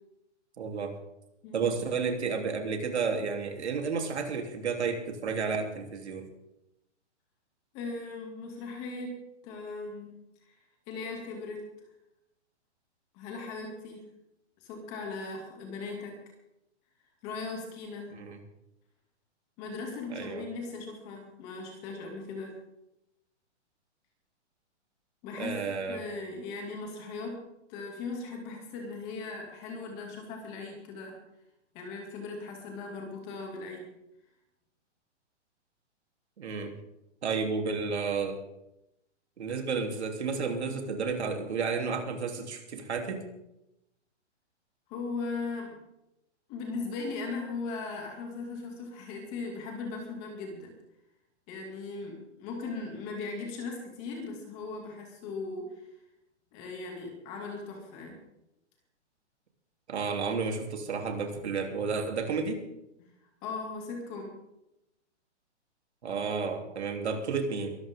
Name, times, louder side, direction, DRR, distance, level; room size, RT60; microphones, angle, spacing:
voice 1, 0.6-0.9 1.5-6.3 18.1-18.4 20.1-20.4 25.4-26.0 36.4-36.7 37.2-38.4 39.4-43.2 59.9-62.6 66.0-67.8, right 5 dB, 65° right, 3 dB, 3.5 m, -31 dB
voice 2, 7.7-10.2 10.4-10.5 10.9-11.6 13.1-14.1 14.6-16.2 17.2-18.1 19.6-22.6 25.2-27.4 27.7-31.2 31.7-33.9 44.9-45.8 46.5-50.7 51.5-55.8 56.5-58.2 63.0-63.1 63.4-64.4, left 3 dB, 20° left, 1 dB, 2.6 m, -38 dB
23.0 x 13.5 x 3.8 m, 0.88 s
hypercardioid pair, 175°, 35 cm